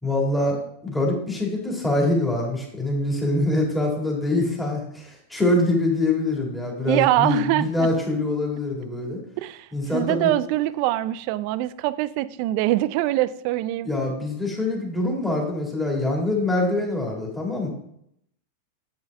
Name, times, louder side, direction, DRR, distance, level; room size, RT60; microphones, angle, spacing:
voice 1, 0.0-9.2 9.7-10.3 13.8-17.7, left 2 dB, 5° left, -2 dB, 2.1 m, -24 dB
voice 2, 6.9-7.9 9.4-9.7 9.9-13.9, right 15 dB, 55° right, 16 dB, 0.4 m, -23 dB
7.9 x 5.4 x 3.5 m, 0.73 s
hypercardioid pair, 110°, 0 cm